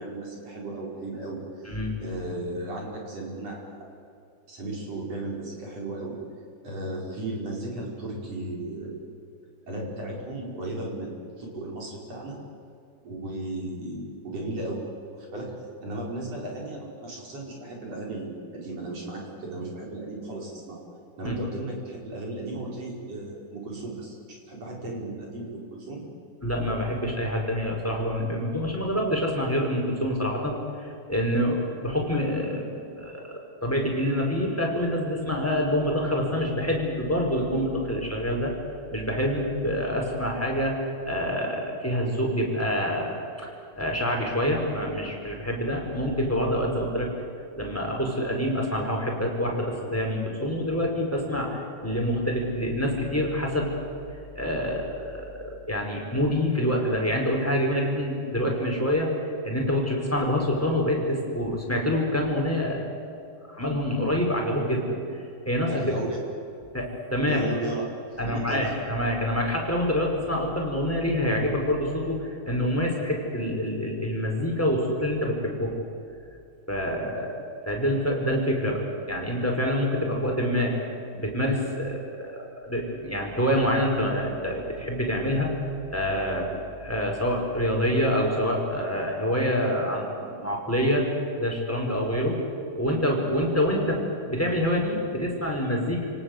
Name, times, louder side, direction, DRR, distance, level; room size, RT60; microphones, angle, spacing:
voice 1, 0.0-3.9 4.5-6.2 6.6-9.0 9.7-12.4 13.0-14.8 15.1-15.5 15.8-20.8 21.2-24.1 24.5-26.0 65.7-66.3 67.3-67.8 68.1-68.8, right 2 dB, 40° right, -2 dB, 6.2 m, -35 dB
voice 2, 26.4-38.5 38.9-47.1 47.6-53.7 54.3-59.1 59.4-62.8 63.5-65.0 65.4-65.7 66.7-67.4 68.2-75.7 76.7-77.4 77.6-80.8 81.1-85.5 85.9-86.5 86.8-91.1 91.4-92.4 92.8-94.0 94.3-96.1, equal, 5° left, 0 dB, 4.6 m, -26 dB
29.5 x 18.5 x 8.1 m, 2.7 s
omnidirectional pair, 4.6 m